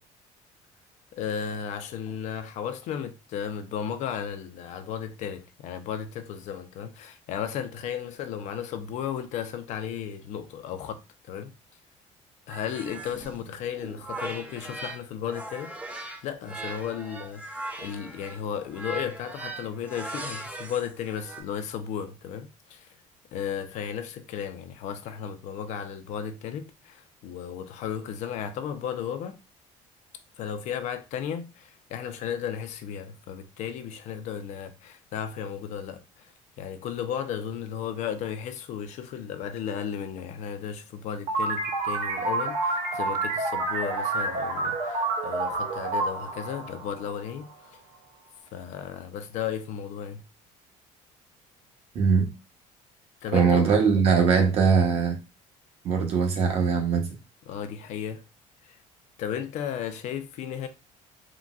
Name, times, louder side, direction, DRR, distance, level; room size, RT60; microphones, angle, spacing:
voice 1, 1.1-11.0 11.3-11.5 12.5-15.8 16.2-22.9 23.3-29.4 30.4-47.8 48.5-50.2 53.2-53.7 57.5-58.2 58.6-58.8 59.2-60.7, left 8 dB, 60° left, 0.5 m, -34 dB
sound 1, 12.5-15.0 15.3-21.4, right 2 dB, 10° right, 0.4 m, -39 dB
sound 2, 41.3-47.5, right 3 dB, 85° right, 0.8 m, -29 dB
voice 2, 51.9-52.3 53.3-55.2 55.8-57.1, right 6 dB, 50° right, 0.8 m, -21 dB
3.8 x 2.2 x 2.3 m
cardioid pair, 150°, 14 cm